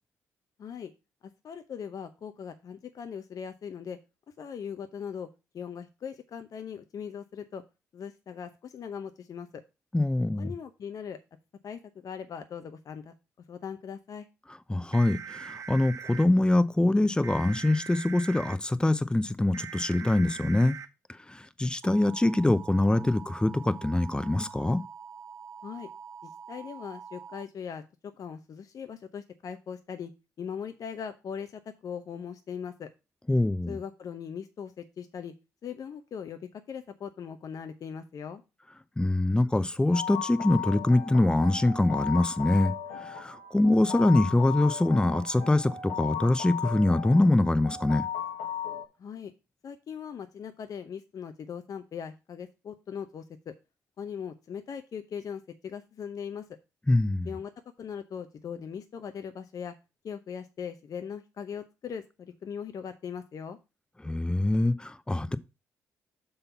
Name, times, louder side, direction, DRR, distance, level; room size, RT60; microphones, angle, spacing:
voice 1, 0.6-0.9 1.4-4.0 4.4-5.3 5.5-7.6 7.9-9.6 10.4-11.2 11.6-13.1 13.5-14.3 25.6-25.9 26.2-27.8 28.2-30.1 30.4-32.9 33.7-35.3 35.6-38.4 49.0-49.3 49.6-53.5 54.0-56.5 57.2-57.5 57.8-59.7 60.0-63.6, left 7 dB, 55° left, 0.7 m, -39 dB
voice 2, 9.9-10.5 14.7-20.8 21.3-24.8 33.3-33.8 39.0-48.0 56.9-57.3 64.0-65.4, left 2 dB, 10° left, 0.7 m, -24 dB
sound 1, 14.9-16.2 17.2-18.6 19.5-20.9 21.8-27.4, right 7 dB, 45° right, 0.9 m, -43 dB
sound 2, 39.9-48.9, left 8 dB, 80° left, 1.2 m, -36 dB
6.7 x 4.0 x 5.4 m
hypercardioid pair, 50°, 7 cm